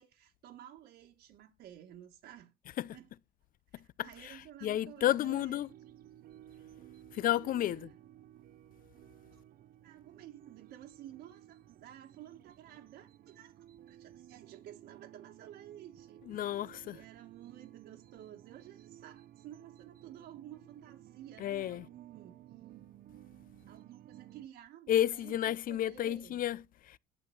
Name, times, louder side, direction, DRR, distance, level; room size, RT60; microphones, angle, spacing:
voice 1, 0.0-2.5 2.9-3.1 3.7-5.7 7.5-7.9 9.3-9.4 9.8-22.4 23.7-26.4, right 11 dB, 75° right, 1.9 m, -53 dB
voice 2, 4.0-4.4 4.6-5.7 7.1-7.9 16.3-17.0 21.4-21.9 24.9-27.0, left 12 dB, 55° left, 0.6 m, -32 dB
sound 1, 5.0-24.5, right 12 dB, 60° right, 0.7 m, -56 dB
11.0 x 7.8 x 6.0 m
cardioid pair, 110°, 17 cm